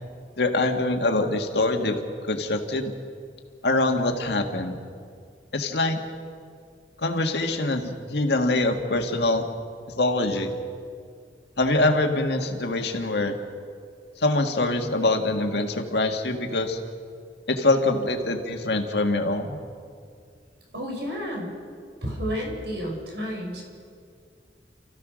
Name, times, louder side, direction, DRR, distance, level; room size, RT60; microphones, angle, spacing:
voice 1, 0.4-2.9 3.6-4.8 5.5-6.0 7.0-9.4 10.0-10.5 11.6-13.4 14.2-16.8 17.5-19.6, left 2 dB, 70° left, 4 dB, 1.9 m, -24 dB
voice 2, 20.7-21.5 22.0-23.6, equal, 75° right, 1 dB, 5.3 m, -31 dB
29.0 x 15.0 x 6.3 m, 2.2 s
head